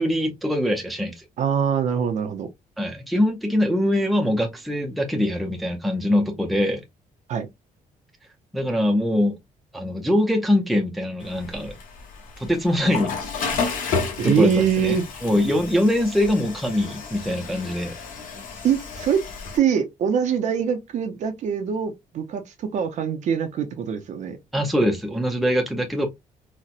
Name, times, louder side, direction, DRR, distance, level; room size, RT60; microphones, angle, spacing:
voice 1, 0.0-1.2 2.8-6.8 8.5-9.3 9.7-11.7 12.4-13.1 14.2-18.0 24.5-26.1, left 1 dB, ahead, 0.4 m, -23 dB
voice 2, 1.4-2.5 7.3-7.5 14.2-15.0 18.6-19.2 19.5-24.4, right 7 dB, 55° right, 0.5 m, -23 dB
Water / Toilet flush, 11.2-19.6, left 5 dB, 70° left, 1.0 m, -32 dB
4.1 x 2.0 x 2.4 m
cardioid pair, 165°, 15 cm